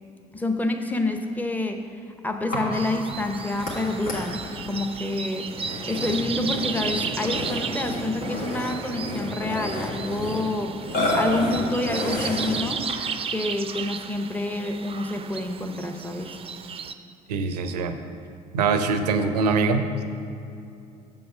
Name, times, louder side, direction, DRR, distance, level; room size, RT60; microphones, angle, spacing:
voice 1, 0.3-1.8 2.2-5.5 5.9-10.7 11.1-12.9 13.3-16.4, left 2 dB, 10° left, 5 dB, 0.7 m, -28 dB
Burping eructation, 2.5-13.2, left 1 dB, 70° left, 1.9 m, -31 dB
sound 1, 2.7-16.9, right 6 dB, 30° right, 0.4 m, -35 dB
voice 2, 17.3-18.0 18.5-20.0, right 4 dB, 90° right, 8 dB, 0.5 m, -23 dB
7.0 x 5.5 x 5.6 m, 2.7 s
hypercardioid pair, 60°, 20 cm